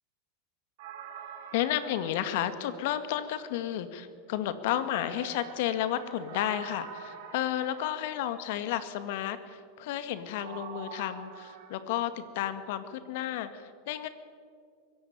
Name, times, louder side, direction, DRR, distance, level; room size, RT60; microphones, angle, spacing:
sound 1, 0.8-3.6 4.9-8.7 10.4-11.7, right 7 dB, 65° right, 4.4 m, -46 dB
voice 1, 1.5-14.1, left 11 dB, 65° left, 11 dB, 2.0 m, -32 dB
23.5 x 15.5 x 9.5 m, 2.1 s
hypercardioid pair, 100°, 0 cm